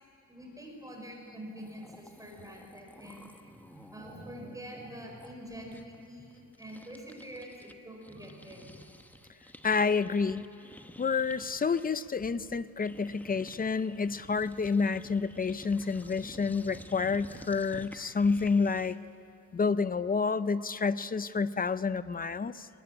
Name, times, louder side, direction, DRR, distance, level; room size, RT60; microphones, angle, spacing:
voice 1, 0.3-8.7 20.6-20.7, equal, 10° right, 0 dB, 6.1 m, -46 dB
sound 1, 1.3-1.4 1.5-7.7 8.0-19.1, left 1 dB, 5° left, 1.0 m, -52 dB
voice 2, 9.6-10.5 11.0-19.0 19.5-22.7, left 5 dB, 25° left, 15 dB, 0.6 m, -29 dB
22.5 x 19.5 x 9.9 m, 2.6 s
wide cardioid pair, 125°, 33 cm